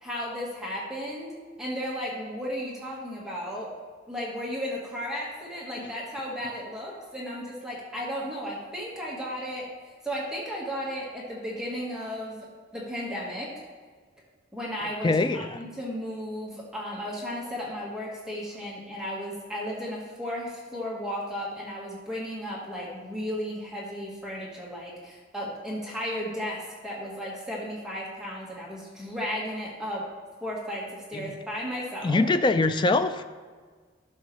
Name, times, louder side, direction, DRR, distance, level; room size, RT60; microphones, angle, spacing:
voice 1, 0.0-1.3 1.6-3.7 4.1-9.7 10.0-12.5 12.7-13.5 14.5-30.1 30.4-32.2, equal, 5° right, -5 dB, 1.4 m, -34 dB
voice 2, 15.0-15.6 31.1-31.3 32.0-33.2, left 3 dB, 25° left, 10 dB, 0.3 m, -23 dB
11.0 x 6.5 x 3.1 m, 1.5 s
head